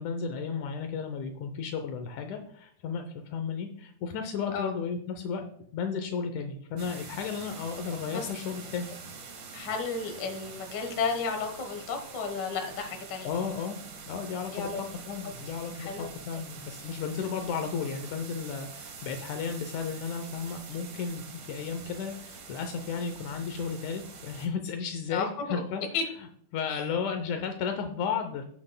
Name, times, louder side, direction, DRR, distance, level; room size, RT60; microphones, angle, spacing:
voice 1, 0.0-5.5 5.7-8.9 13.2-13.8 14.1-25.8 26.5-28.4, left 6 dB, 80° left, 6 dB, 2.2 m, -34 dB
sound 1, 6.8-24.5, right 5 dB, 90° right, 3.2 m, -45 dB
voice 2, 9.5-13.3 14.5-14.8 15.2-15.3 15.8-16.1 25.1-25.6 25.9-26.0 26.7-26.8, left 5 dB, 50° left, 5 dB, 1.3 m, -33 dB
15.5 x 7.6 x 2.2 m, 0.65 s
omnidirectional pair, 3.5 m